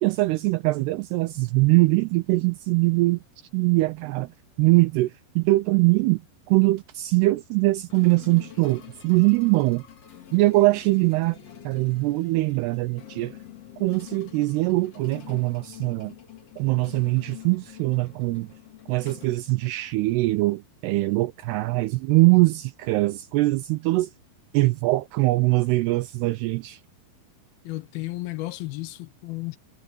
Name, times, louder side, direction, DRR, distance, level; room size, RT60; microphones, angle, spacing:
voice 1, 0.0-3.2 3.5-6.2 6.5-9.8 10.3-11.4 11.6-13.4 13.8-16.1 16.6-18.5 18.9-24.1 24.5-26.8, right 21 dB, 85° right, 2.3 m, -22 dB
sound 1, 7.9-20.2, left 11 dB, 40° left, 2.6 m, -46 dB
voice 2, 27.6-29.6, left 18 dB, 70° left, 2.4 m, -33 dB
omnidirectional pair, 5.3 m